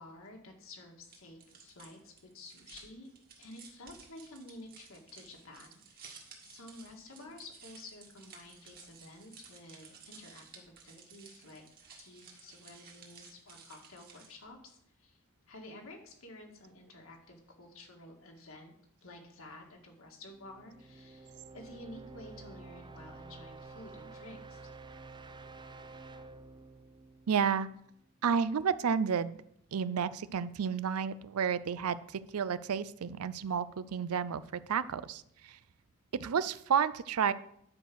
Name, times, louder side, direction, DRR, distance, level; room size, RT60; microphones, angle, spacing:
voice 1, 0.0-3.1 3.4-11.6 12.0-15.2 15.5-18.7 19.0-24.7, left 2 dB, 65° left, 1 dB, 2.1 m, -51 dB
sound 1, 1.0-14.5, right 6 dB, 45° right, 1.9 m, -55 dB
sound 2, 20.3-28.1, right 3 dB, 20° right, 0.5 m, -50 dB
voice 2, 27.3-27.7 28.2-29.4 29.7-35.6 36.1-37.3, right 7 dB, 90° right, 16 dB, 0.5 m, -31 dB
10.5 x 4.9 x 6.2 m, 0.72 s
head